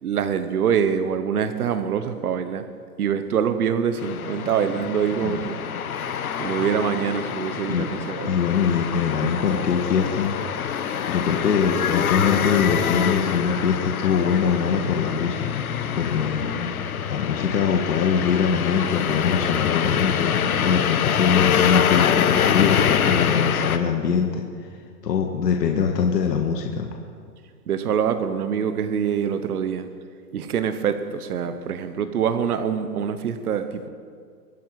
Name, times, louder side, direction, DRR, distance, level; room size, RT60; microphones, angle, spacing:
voice 1, 0.0-2.6 3.0-5.6 6.4-8.3 27.7-29.9 30.3-33.9, right 7 dB, 65° right, 10 dB, 1.1 m, -25 dB
sound 1, 4.0-23.8, left 8 dB, 60° left, 1.1 m, -25 dB
voice 2, 8.2-15.4 15.9-16.5 17.1-24.4 25.0-26.9, left 6 dB, 80° left, 2 dB, 1.8 m, -23 dB
24.0 x 9.5 x 4.8 m, 2.1 s
hypercardioid pair, 180°, 49 cm